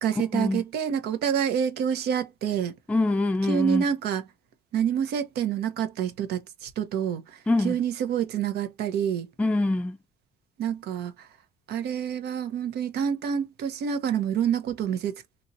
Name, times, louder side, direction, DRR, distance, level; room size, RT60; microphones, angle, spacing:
voice 1, 0.0-2.7 3.5-4.2 4.7-7.2 7.6-9.3 10.6-11.3 11.7-15.2, right 8 dB, 75° right, 0.8 m, -27 dB
voice 2, 2.9-3.8 7.5-7.8 9.4-10.0, left 2 dB, 10° left, 0.4 m, -24 dB
3.0 x 2.6 x 2.6 m
cardioid pair, 110°, 17 cm